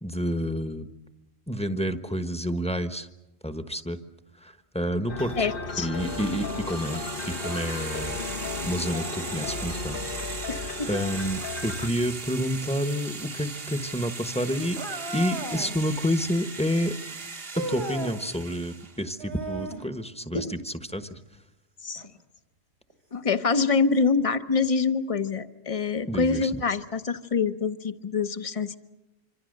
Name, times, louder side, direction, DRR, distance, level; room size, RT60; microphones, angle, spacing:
voice 1, 0.0-0.9 1.5-3.1 3.4-4.0 4.4-5.3 5.8-10.0 10.9-14.8 15.1-16.9 17.6-21.2 26.1-26.5, equal, 5° left, 8 dB, 1.1 m, -29 dB
sound 1, 5.1-11.9, left 4 dB, 55° left, 1.4 m, -34 dB
voice 2, 5.4-5.9 10.5-10.9 20.3-20.6 21.8-22.0 23.1-28.8, left 4 dB, 35° left, 10 dB, 1.0 m, -26 dB
sound 2, 5.9-19.0, right 4 dB, 60° right, 1.5 m, -38 dB
sound 3, 14.8-15.8 17.4-18.2 19.2-19.9 21.9-22.1 22.9-23.0 24.0-24.1, right 2 dB, 85° right, 3.4 m, -35 dB
26.0 x 25.5 x 6.6 m, 0.99 s
omnidirectional pair, 1.1 m